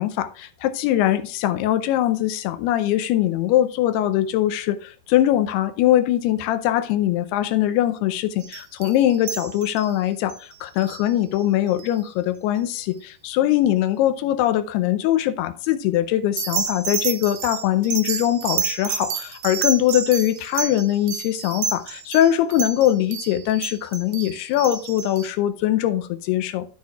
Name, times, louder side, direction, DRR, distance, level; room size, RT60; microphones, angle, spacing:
voice 1, 0.0-26.7, left 12 dB, 85° left, 2.6 m, -22 dB
sound 1, 8.4-9.9 10.3-10.4 10.8-11.0 11.8-11.9 16.4-25.3, right 6 dB, 80° right, 3.1 m, -30 dB
13.5 x 6.2 x 2.3 m
omnidirectional pair, 4.7 m